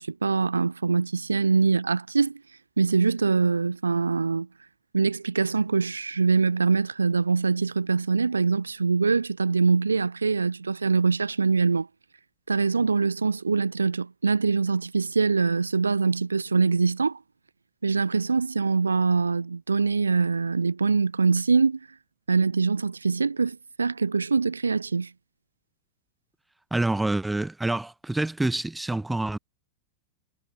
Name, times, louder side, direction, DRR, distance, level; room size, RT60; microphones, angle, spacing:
voice 1, 0.0-2.4 2.8-4.5 4.9-11.9 12.5-17.2 17.8-21.8 22.3-25.1, right 4 dB, 75° right, 1.0 m, -23 dB
voice 2, 26.7-29.4, right 2 dB, 5° right, 0.5 m, -27 dB
figure-of-eight pair, 90°, 0 cm